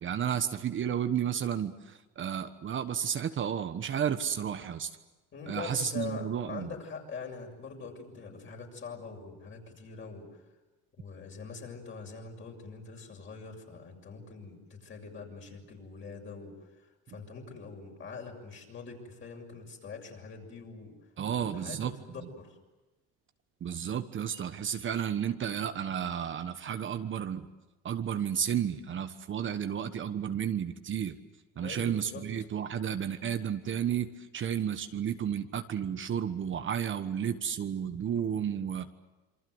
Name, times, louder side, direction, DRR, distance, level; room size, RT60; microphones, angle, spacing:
voice 1, 0.0-4.9 5.5-6.7 21.2-22.0 23.6-27.5 27.8-31.2 31.6-38.9, right 8 dB, 40° right, 8 dB, 1.3 m, -32 dB
voice 2, 5.3-10.4 11.0-21.0 21.3-22.6 31.5-32.3, left 5 dB, 40° left, 2 dB, 7.0 m, -43 dB
27.0 x 24.5 x 8.0 m, 1.1 s
supercardioid pair, 110°, 32 cm